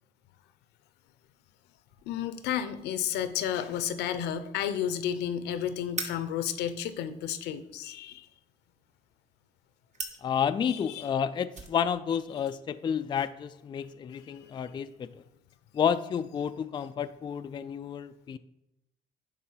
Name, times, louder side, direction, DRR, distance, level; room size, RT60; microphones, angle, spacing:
sound 1, 1.9-15.0, right 4 dB, 45° right, 1.2 m, -48 dB
voice 1, 2.1-8.3 10.7-11.1 14.2-14.5, left 9 dB, 85° left, 11 dB, 0.8 m, -32 dB
voice 2, 10.2-15.1 15.7-18.4, left 8 dB, 25° left, 11 dB, 0.3 m, -30 dB
10.0 x 3.8 x 5.6 m, 0.84 s
cardioid pair, 110°, 17 cm